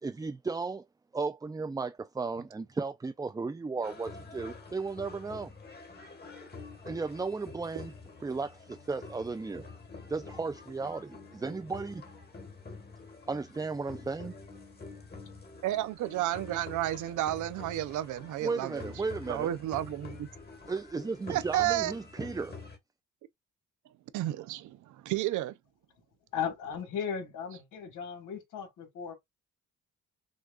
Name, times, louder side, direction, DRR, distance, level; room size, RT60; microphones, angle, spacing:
voice 1, 0.0-0.8 1.1-5.5 6.8-7.9 8.2-9.7 10.1-12.0 13.3-14.3 18.4-19.5 20.7-22.6, right 4 dB, 10° right, 0.4 m, -35 dB
sound 1, 3.8-22.8, left 4 dB, 35° left, 1.7 m, -47 dB
voice 2, 15.6-18.8 19.3-20.3 21.3-21.9 24.1-25.5, right 14 dB, 80° right, 0.6 m, -31 dB
voice 3, 26.3-29.1, left 7 dB, 80° left, 1.8 m, -36 dB
6.3 x 2.3 x 2.4 m
cardioid pair, 90°, 30 cm